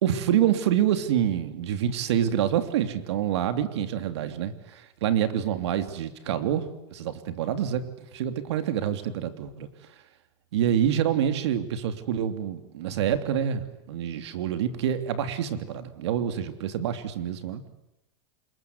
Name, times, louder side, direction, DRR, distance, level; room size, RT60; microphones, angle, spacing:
voice 1, 0.0-9.7 10.5-17.6, right 10 dB, 80° right, 9 dB, 3.1 m, -27 dB
27.5 x 22.5 x 9.8 m, 0.89 s
supercardioid pair, 135°, 14 cm